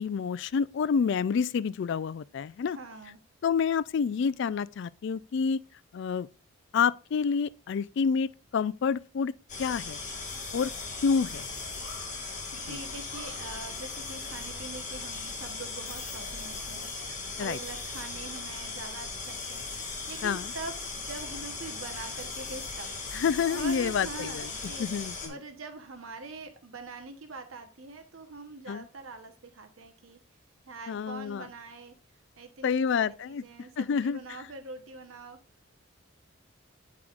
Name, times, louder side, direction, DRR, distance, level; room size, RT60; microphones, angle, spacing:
voice 1, 0.0-2.8 3.4-5.6 5.9-6.3 6.7-9.3 9.6-10.0 10.5-10.7 11.0-11.5 12.7-12.8 17.4-17.6 20.2-20.5 23.1-24.5 24.8-25.3 28.7-28.9 30.9-31.5 32.6-33.4 33.8-34.2, left 6 dB, 60° left, 0.3 m, -28 dB
voice 2, 2.7-3.2 12.5-22.9 23.5-24.8 25.3-30.2 30.7-32.0 32.4-35.4, right 3 dB, 80° right, 1.0 m, -44 dB
sound 1, 9.5-25.3, left 4 dB, 35° left, 1.9 m, -38 dB
8.7 x 4.7 x 2.4 m
head